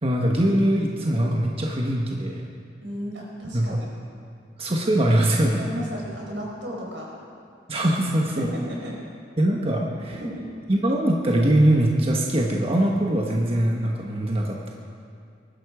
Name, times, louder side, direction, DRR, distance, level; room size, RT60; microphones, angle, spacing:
voice 1, 0.0-2.5 3.5-3.6 4.6-5.6 7.7-8.5 9.4-10.2 10.7-14.7, right 1 dB, 30° right, -1 dB, 1.3 m, -22 dB
voice 2, 2.8-3.9 5.6-7.1 8.3-8.9 10.2-10.4, equal, 80° right, -2 dB, 4.9 m, -34 dB
23.0 x 12.0 x 5.0 m, 2.3 s
head